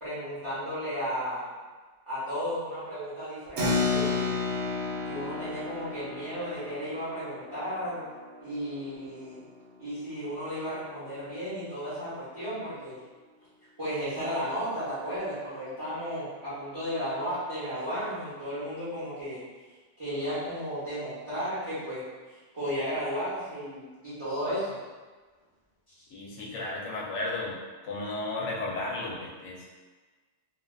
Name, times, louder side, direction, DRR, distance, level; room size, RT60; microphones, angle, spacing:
voice 1, 0.0-1.5 2.1-4.3 5.0-8.0 8.4-9.4 9.8-13.0 13.8-19.4 20.0-22.0 22.3-24.8, equal, 30° right, -14 dB, 0.9 m, -34 dB
Keyboard (musical), 3.6-9.6, left 3 dB, 70° right, 0.8 m, -32 dB
voice 2, 26.1-27.6 27.8-29.6, left 2 dB, 75° left, -4 dB, 0.9 m, -34 dB
2.4 x 2.4 x 2.3 m, 1.3 s
omnidirectional pair, 1.2 m